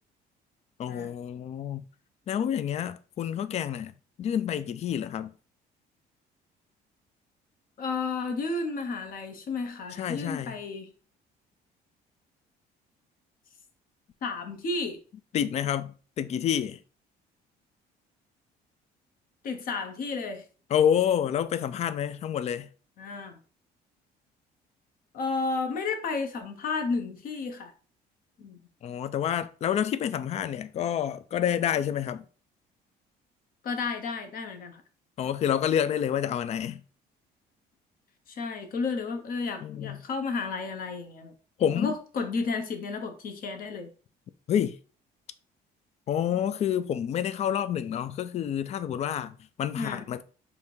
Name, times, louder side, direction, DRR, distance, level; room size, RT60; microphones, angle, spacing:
voice 1, 0.8-1.8 2.3-3.9 4.2-5.3 10.0-10.6 15.3-16.8 20.7-22.7 28.8-32.2 35.2-36.8 39.6-40.0 41.6-41.9 44.5-44.8 46.1-50.2, left 9 dB, 40° left, 0.4 m, -28 dB
voice 2, 7.8-10.9 14.2-15.0 19.4-20.4 23.0-23.4 25.1-27.7 28.4-28.6 33.6-34.8 38.3-41.3 41.7-43.9 49.7-50.0, left 4 dB, 55° left, 1.0 m, -32 dB
3.6 x 2.7 x 4.4 m
cardioid pair, 110°, 17 cm